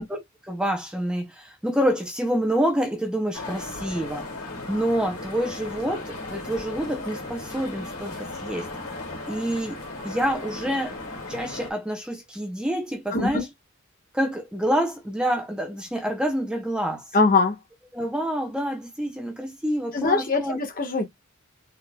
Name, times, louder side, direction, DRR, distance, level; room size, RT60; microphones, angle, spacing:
voice 1, 0.0-4.3 4.7-8.7 9.3-11.0 11.3-13.5 14.1-17.1 17.9-20.6, equal, 5° right, 0.5 m, -27 dB
sound 1, 3.3-11.7, left 2 dB, 90° left, 2.1 m, -36 dB
voice 2, 13.1-13.4 17.1-17.5 19.9-21.1, left 3 dB, 40° left, 1.2 m, -22 dB
3.9 x 3.6 x 2.2 m
head